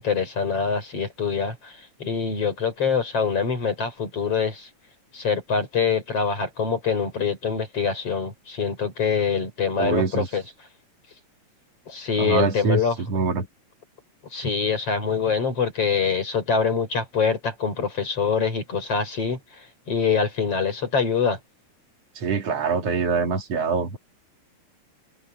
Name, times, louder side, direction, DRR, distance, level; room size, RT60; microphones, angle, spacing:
voice 1, 0.0-4.7 5.1-10.4 11.9-13.0 14.3-19.4 19.9-21.4, left 6 dB, 55° left, 6.0 m, -24 dB
voice 2, 9.8-10.3 12.2-13.5 22.2-24.0, right 4 dB, 60° right, 3.8 m, -24 dB
omnidirectional pair, 3.3 m